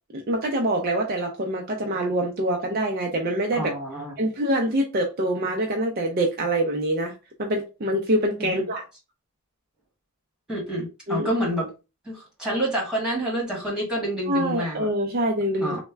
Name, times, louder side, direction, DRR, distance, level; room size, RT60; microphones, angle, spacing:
voice 1, 0.1-3.7 4.2-7.1 7.4-8.8 11.1-11.3 14.3-15.8, right 1 dB, 40° right, 0.4 m, -25 dB
voice 2, 3.6-4.1 8.4-8.7 10.5-11.7 12.0-14.9 15.6-15.8, equal, 5° right, 1.4 m, -28 dB
3.2 x 2.1 x 3.2 m
head